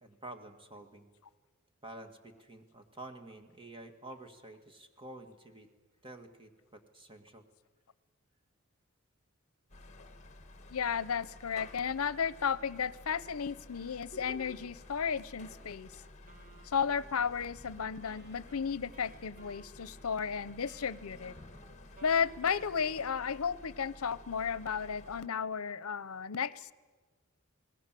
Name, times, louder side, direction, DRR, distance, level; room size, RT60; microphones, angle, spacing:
voice 1, 0.0-1.1 1.8-5.7 6.0-7.4, right 2 dB, 25° right, 6 dB, 1.9 m, -49 dB
sound 1, 9.7-25.3, left 2 dB, 35° left, 1.8 m, -52 dB
voice 2, 10.7-15.9 16.6-21.3 22.0-26.7, left 6 dB, 80° left, 19 dB, 0.7 m, -34 dB
Wind instrument woodwind instrument, 16.3-23.4, right 3 dB, 40° right, 2.1 m, -59 dB
29.0 x 19.5 x 7.6 m, 1.4 s
head